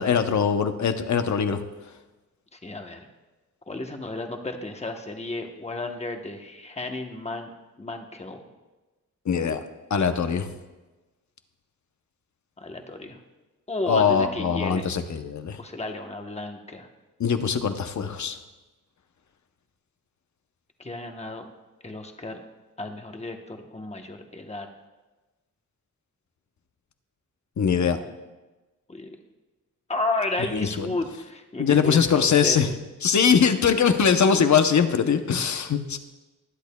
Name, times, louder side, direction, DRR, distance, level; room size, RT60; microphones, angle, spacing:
voice 1, 0.0-1.6 9.3-9.6 9.9-10.5 13.9-15.6 17.2-18.4 27.6-28.0 30.5-30.9 31.6-32.7 33.0-36.0, left 6 dB, 60° left, 8 dB, 0.8 m, -22 dB
voice 2, 2.5-3.1 3.7-8.4 12.6-13.2 13.7-14.8 15.6-16.9 20.8-21.5 21.8-22.4 22.8-24.7 27.8-28.2 28.9-29.2 29.9-32.8, left 2 dB, 20° left, 4 dB, 1.0 m, -33 dB
20.5 x 10.5 x 2.3 m, 1.2 s
wide cardioid pair, 170°, 33 cm